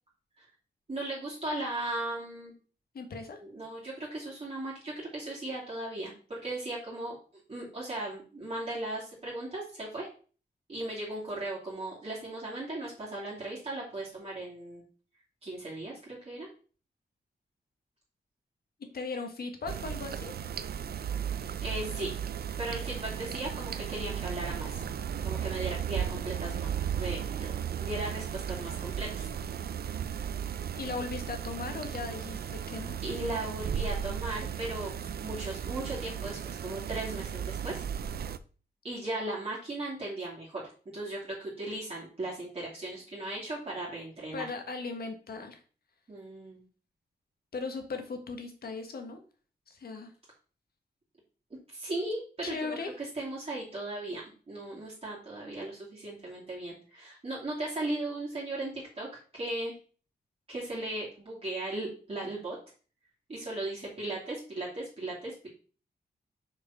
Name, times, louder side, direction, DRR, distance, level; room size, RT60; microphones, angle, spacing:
voice 1, 0.9-2.5 3.4-10.1 10.7-14.8 15.4-16.5 21.6-22.1 22.6-24.8 25.2-26.7 26.9-27.5 27.8-29.3 33.0-37.8 38.8-40.6 40.9-44.5 46.1-46.6 51.7-59.7 60.5-62.6 63.3-65.5, right 2 dB, 35° right, -5 dB, 2.6 m, -37 dB
voice 2, 2.9-3.4 18.9-20.3 30.8-33.0 44.3-45.6 47.5-49.2 49.7-50.1 52.4-52.9, left 4 dB, 65° left, 5 dB, 1.6 m, -38 dB
sound 1, 19.7-38.4, right 8 dB, 65° right, 0.5 m, -35 dB
6.4 x 4.8 x 5.7 m, 0.39 s
wide cardioid pair, 150°, 17 cm